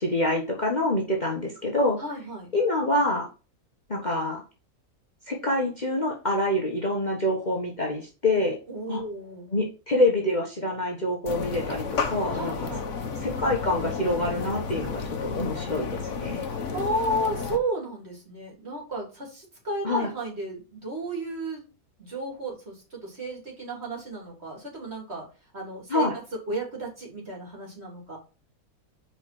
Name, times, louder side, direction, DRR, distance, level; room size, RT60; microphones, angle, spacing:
voice 1, 0.0-2.0 2.5-3.3 3.9-4.4 5.3-8.6 8.9-9.0 9.5-12.7 13.2-16.5 19.8-20.1 25.9-26.2, left 1 dB, 30° left, 0 dB, 1.4 m, -26 dB
voice 2, 2.0-2.5 8.7-9.5 12.3-13.1 16.7-21.7 22.0-25.3 25.5-26.1 26.5-28.2, right 1 dB, 40° right, -1 dB, 3.3 m, -33 dB
sound 1, 11.3-17.6, left 5 dB, 55° left, 1.3 m, -32 dB
5.0 x 5.0 x 5.9 m, 0.32 s
omnidirectional pair, 1.6 m